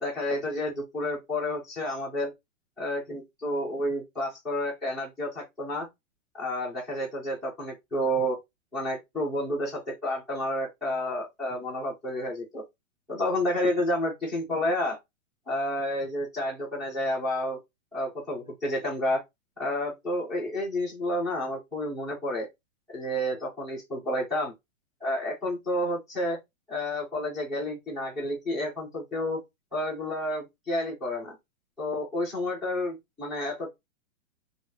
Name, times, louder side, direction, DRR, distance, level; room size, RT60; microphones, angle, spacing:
voice 1, 0.0-2.3 2.8-5.9 6.3-8.4 8.7-12.6 13.1-15.0 15.5-17.6 17.9-19.2 19.6-22.5 22.9-24.5 25.0-26.4 26.7-29.4 29.7-31.3 31.8-33.7, left 1 dB, ahead, 0.3 m, -30 dB
2.6 x 2.3 x 3.4 m
hypercardioid pair, 150°, 39 cm